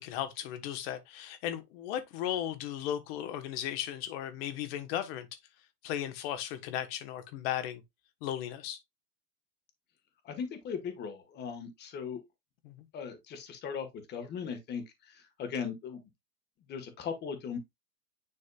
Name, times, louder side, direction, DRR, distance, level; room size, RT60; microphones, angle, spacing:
voice 1, 0.0-5.3 5.8-7.8 8.2-8.8 12.6-12.9, left 11 dB, 40° left, 1.4 m, -36 dB
voice 2, 10.2-12.2 12.9-16.0 16.7-17.6, left 6 dB, 20° left, 1.6 m, -38 dB
9.9 x 4.1 x 2.4 m
hypercardioid pair, 140°, 48 cm